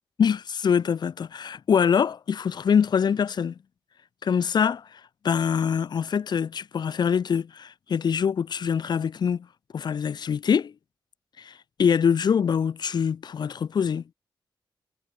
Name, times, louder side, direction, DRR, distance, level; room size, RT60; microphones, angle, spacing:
voice 1, 0.2-3.5 4.2-4.9 5.2-9.5 9.7-10.7 11.4-11.5 11.8-14.0, left 7 dB, 60° left, 0.5 m, -24 dB
cardioid pair, 75°, 8 cm